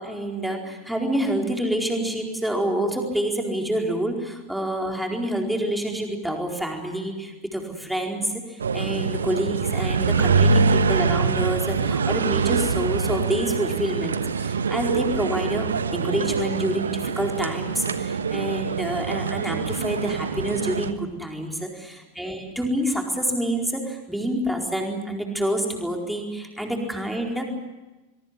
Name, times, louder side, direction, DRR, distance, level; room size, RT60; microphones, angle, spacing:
voice 1, 0.0-27.5, right 1 dB, ahead, 1 dB, 4.5 m, -27 dB
sound 1, 8.6-20.9, right 5 dB, 70° right, 1.2 m, -24 dB
25.0 x 22.5 x 8.1 m, 1.1 s
figure-of-eight pair, 90°, 0 cm